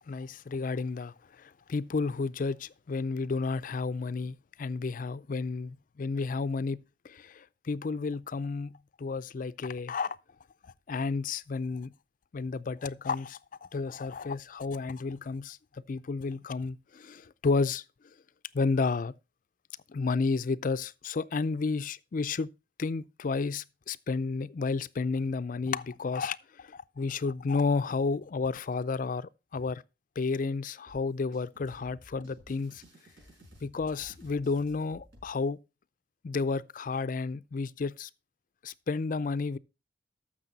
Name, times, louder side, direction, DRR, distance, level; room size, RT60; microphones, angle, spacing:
voice 1, 0.1-6.8 7.0-8.7 9.0-10.2 10.9-11.9 12.3-15.6 15.9-17.8 18.5-19.1 19.9-22.5 22.8-29.8 30.2-32.8 33.6-35.6 36.2-38.1 38.6-39.6, left 4 dB, 50° left, 0.4 m, -31 dB
sound 1, 30.9-35.3, equal, 75° right, 5.2 m, -55 dB
13.5 x 6.3 x 4.0 m
head